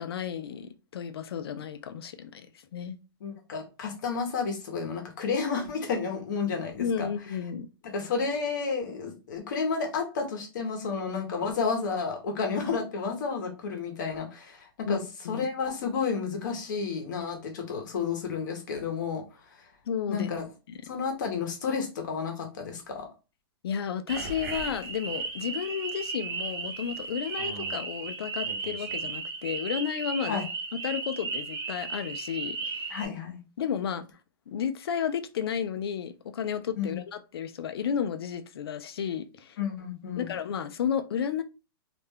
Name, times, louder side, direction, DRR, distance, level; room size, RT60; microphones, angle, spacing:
voice 1, 0.0-2.5 2.7-3.0 6.8-7.7 14.9-15.0 15.2-15.5 19.9-20.3 20.7-20.8 23.6-30.4 30.8-33.0 33.6-34.0 34.5-39.6 40.1-41.4, left 8 dB, 75° left, 0.4 m, -32 dB
voice 2, 3.2-7.1 7.8-15.0 15.3-19.7 20.1-20.4 20.8-23.1 30.3-30.4 32.9-33.4 36.8-37.0 39.6-40.3, left 5 dB, 50° left, 0.8 m, -31 dB
sound 1, 24.1-33.0, right 4 dB, 70° right, 0.9 m, -35 dB
2.4 x 2.1 x 3.4 m
hypercardioid pair, 175°, 13 cm